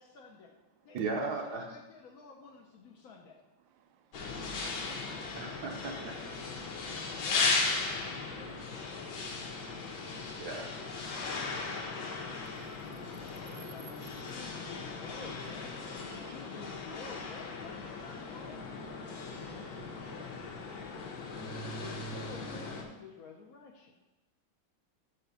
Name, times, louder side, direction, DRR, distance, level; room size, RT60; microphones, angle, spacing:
voice 1, 0.0-0.6 0.8-3.4 7.2-8.8 13.4-18.7 21.8-24.0, left 4 dB, 65° left, 0.9 m, -50 dB
voice 2, 0.9-1.6 5.3-6.1 10.4-10.7 19.4-19.9, right 4 dB, 65° right, 1.2 m, -37 dB
voice 3, 3.6-5.6 12.5-12.8 16.3-16.4, right 9 dB, 80° right, 1.4 m, -68 dB
sound 1, 4.1-22.8, left 3 dB, 85° left, 1.7 m, -37 dB
5.8 x 5.0 x 5.5 m
omnidirectional pair, 2.1 m